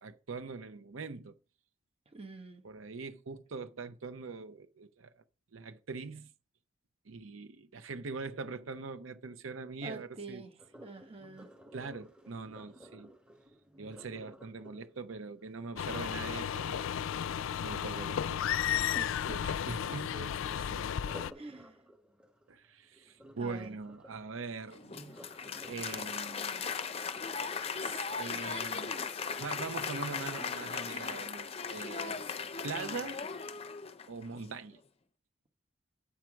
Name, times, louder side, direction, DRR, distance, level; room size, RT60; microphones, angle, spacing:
voice 1, 0.0-1.4 2.6-5.2 5.5-6.3 7.1-10.5 11.7-13.1 13.8-17.0 17.6-18.4 19.4-20.2 22.5-24.9 25.7-26.7 27.8-28.9 29.4-32.2 32.6-33.2 34.1-34.8, right 4 dB, 90° right, 0.7 m, -42 dB
voice 2, 2.1-2.7 9.8-10.5 10.8-11.5 18.9-19.5 20.1-20.9 21.3-21.8 23.4-23.8, right 3 dB, 30° right, 1.2 m, -46 dB
Sink (filling or washing), 10.6-16.5 20.9-28.0 28.5-28.8 29.3-29.4, equal, 5° right, 1.5 m, -55 dB
sound 1, 15.8-21.3, left 9 dB, 85° left, 0.4 m, -33 dB
Applause, 24.7-34.3, left 5 dB, 30° left, 0.6 m, -38 dB
8.6 x 4.6 x 6.2 m
head